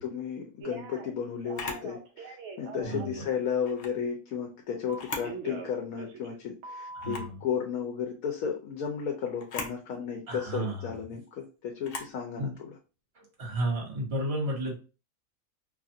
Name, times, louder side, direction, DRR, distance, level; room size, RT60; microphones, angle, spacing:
voice 1, 0.0-12.7, left 7 dB, 80° left, 1 dB, 1.0 m, -34 dB
Telephone, 0.6-1.1 1.4-3.2 4.9-6.4 6.6-7.3, right 4 dB, 65° right, 0.9 m, -42 dB
Camera, 1.5-1.9 3.6-4.0 4.9-5.4 5.8-5.9 7.0-7.4 9.4-9.8 11.8-12.2, left 4 dB, 55° left, 0.7 m, -38 dB
voice 2, 2.8-3.2 6.9-7.4 10.3-10.9 12.4-12.5 13.2-14.7, right 1 dB, 50° right, -1 dB, 1.3 m, -32 dB
2.8 x 2.4 x 2.6 m, 0.33 s
omnidirectional pair, 1.5 m